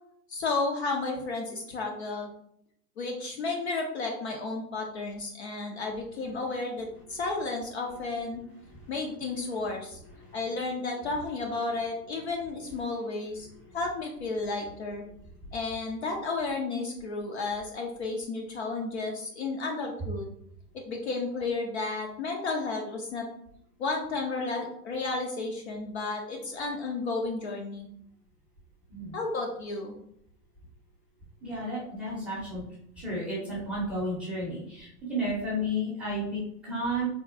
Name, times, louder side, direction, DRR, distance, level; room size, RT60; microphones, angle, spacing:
voice 1, 0.3-2.3 3.0-8.4 8.9-10.0 10.3-13.5 13.7-15.0 15.5-20.3 20.7-23.3 23.8-27.9 29.1-29.9, left 3 dB, 45° left, 1 dB, 0.5 m, -32 dB
voice 2, 31.4-32.6 33.0-37.1, equal, ahead, -9 dB, 0.6 m, -33 dB
3.6 x 2.2 x 2.3 m, 0.73 s
hypercardioid pair, 130°, 49 cm